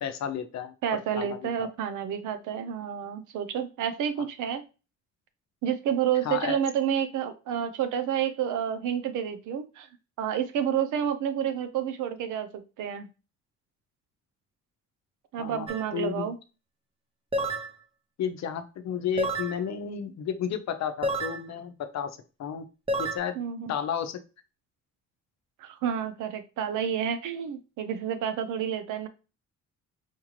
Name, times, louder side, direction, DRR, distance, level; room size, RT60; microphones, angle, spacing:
voice 1, 0.0-1.7 6.2-6.6 15.4-16.3 18.2-22.6 23.0-23.4 23.7-24.2, left 8 dB, 60° left, 8 dB, 0.7 m, -32 dB
voice 2, 0.8-4.6 5.6-9.9 10.2-13.1 15.3-16.4 23.4-23.7 25.6-29.1, right 9 dB, 80° right, 10 dB, 0.7 m, -29 dB
sound 1, 15.7-15.8 17.3-17.7 19.2-19.5 21.0-21.4 22.9-23.2, right 1 dB, 20° right, 0.8 m, -28 dB
4.5 x 2.4 x 3.1 m, 0.31 s
cardioid pair, 90°, 30 cm